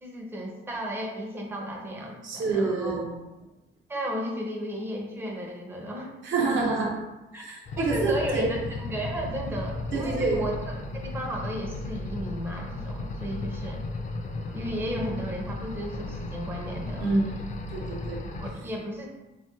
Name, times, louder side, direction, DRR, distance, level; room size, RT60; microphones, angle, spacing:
voice 1, 0.0-3.1 3.9-6.2 7.3-10.6 10.9-13.8 14.5-17.1 18.4-19.1, equal, 10° right, 0 dB, 0.5 m, -34 dB
voice 2, 2.2-3.1 6.2-6.9 7.3-8.5 9.9-10.4 17.0-17.3 17.7-18.3, right 3 dB, 70° right, -2 dB, 0.8 m, -27 dB
sound 1, 7.7-18.5, left 2 dB, 40° left, 0.4 m, -35 dB
3.2 x 2.3 x 2.7 m, 1.0 s
cardioid pair, 90°, 20 cm